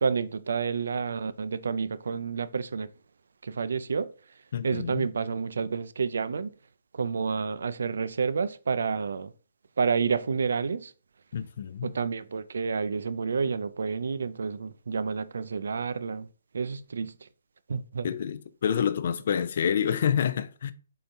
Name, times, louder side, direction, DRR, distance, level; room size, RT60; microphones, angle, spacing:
voice 1, 0.0-2.9 3.4-4.1 4.6-6.5 6.9-9.3 9.8-10.9 11.8-16.3 16.5-17.3 17.7-18.1, right 5 dB, 65° right, 0.3 m, -29 dB
voice 2, 4.5-5.1 11.3-11.9 18.0-20.7, left 8 dB, 50° left, 0.3 m, -28 dB
4.3 x 3.7 x 2.6 m
figure-of-eight pair, 130°, 0 cm